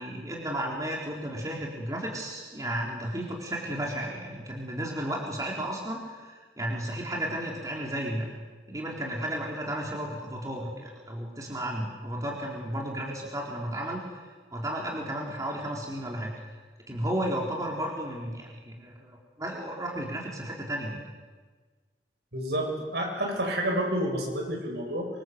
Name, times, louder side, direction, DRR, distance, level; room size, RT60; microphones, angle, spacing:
voice 1, 0.0-8.3 8.7-14.2 14.5-16.3 16.9-21.0, right 1 dB, 20° right, -2 dB, 4.3 m, -33 dB
voice 2, 22.3-25.1, right 1 dB, 65° right, 1 dB, 7.6 m, -29 dB
27.5 x 26.0 x 8.0 m, 1.4 s
head